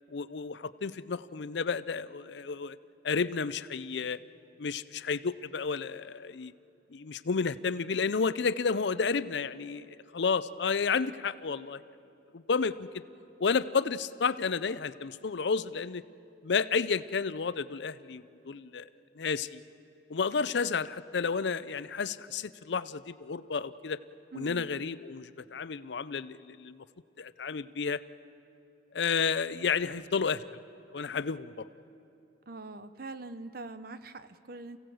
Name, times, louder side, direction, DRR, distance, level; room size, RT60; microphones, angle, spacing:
voice 1, 0.1-2.8 3.0-4.2 4.6-6.5 6.9-11.8 12.3-12.9 13.4-16.0 16.4-18.8 19.2-19.6 20.1-24.0 24.3-26.8 27.2-28.0 28.9-30.6 30.9-31.7, left 5 dB, 70° left, 15 dB, 0.5 m, -31 dB
voice 2, 24.3-24.7 32.5-34.8, right 3 dB, 55° right, 12 dB, 0.7 m, -43 dB
28.5 x 16.5 x 7.8 m, 2.7 s
head